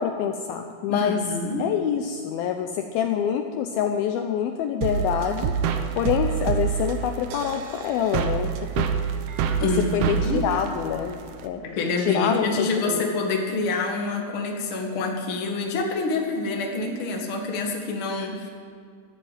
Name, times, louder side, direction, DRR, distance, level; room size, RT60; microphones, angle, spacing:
voice 1, 0.0-1.2 1.6-5.5 6.0-8.5 8.8-8.9 9.6-11.6 12.0-13.1, left 8 dB, 75° left, 5 dB, 2.3 m, -26 dB
voice 2, 0.9-1.7 9.6-10.4 11.6-18.5, left 3 dB, 45° left, 0 dB, 2.0 m, -27 dB
sound 1, 4.8-11.5, right 7 dB, 75° right, 2.6 m, -27 dB
12.5 x 11.5 x 8.9 m, 2.3 s
omnidirectional pair, 4.8 m